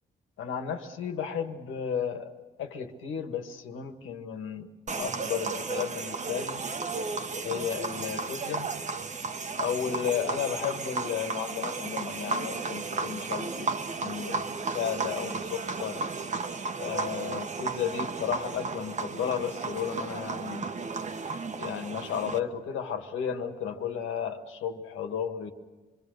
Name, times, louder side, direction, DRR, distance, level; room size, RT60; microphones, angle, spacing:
voice 1, 0.4-2.3 2.6-4.7 5.0-6.6 7.4-8.7 9.6-13.7 14.0-16.0 16.8-20.7 21.6-25.5, left 8 dB, 80° left, 6 dB, 2.0 m, -33 dB
sound 1, 4.9-22.4, right 4 dB, 35° right, 1.3 m, -34 dB
26.5 x 23.0 x 6.7 m, 1.2 s
cardioid pair, 90°, 20 cm